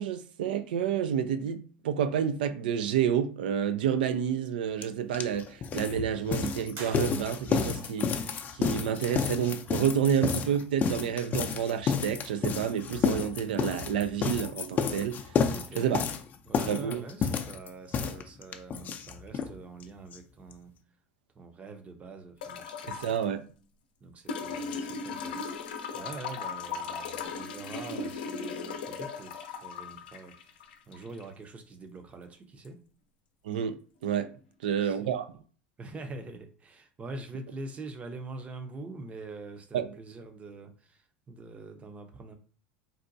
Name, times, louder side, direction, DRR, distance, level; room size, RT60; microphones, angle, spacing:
voice 1, 0.0-15.2 15.8-16.0 16.7-17.0 22.9-23.4 33.4-33.8 34.0-34.3 34.6-35.3 39.7-39.9, right 8 dB, 85° right, 0.3 m, -29 dB
sound 1, 4.8-4.9 5.1-19.5 19.8-19.9 20.1-20.2 20.5-20.6, left 6 dB, 35° left, 0.4 m, -30 dB
sound 2, 6.7-7.8, right 2 dB, 65° right, 1.6 m, -45 dB
voice 2, 15.5-15.9 16.5-20.8 21.3-23.4 24.0-32.8 34.7-35.2 35.8-42.3, right 3 dB, 25° right, 0.6 m, -44 dB
sound 3, 22.4-23.2 24.3-31.3 32.6-32.7, left 5 dB, 85° left, 0.6 m, -37 dB
3.8 x 2.2 x 2.6 m
supercardioid pair, 100°, 5 cm